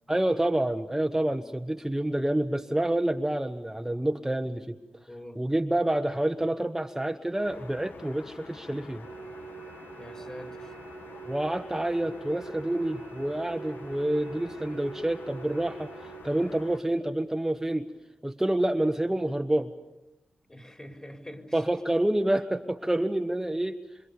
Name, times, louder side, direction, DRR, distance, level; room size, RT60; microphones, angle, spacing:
voice 1, 0.1-4.8 5.3-9.1 11.2-17.9 18.2-19.7 21.5-23.8, right 1 dB, 10° right, 5 dB, 1.2 m, -28 dB
voice 2, 5.1-5.5 9.9-10.7 20.5-21.6, left 1 dB, 20° left, 3 dB, 4.5 m, -45 dB
sound 1, 7.4-16.8, left 4 dB, 75° left, 1.6 m, -48 dB
sound 2, 9.0-16.2, right 6 dB, 80° right, 1.6 m, -45 dB
28.0 x 26.0 x 7.0 m, 0.98 s
cardioid pair, 55°, 3 cm